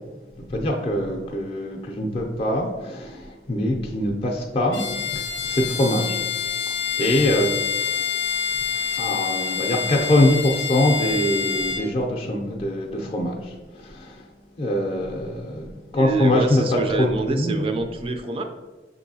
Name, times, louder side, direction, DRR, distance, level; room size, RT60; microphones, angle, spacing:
voice 1, 0.5-6.2 7.0-7.5 8.9-14.3 14.6-17.6, left 1 dB, 35° left, 0 dB, 0.5 m, -23 dB
Bowed string instrument, 4.7-11.9, left 7 dB, 85° left, 0.5 m, -27 dB
voice 2, 16.0-18.4, right 3 dB, 30° right, 5 dB, 0.3 m, -26 dB
5.9 x 2.7 x 2.7 m, 1.2 s
head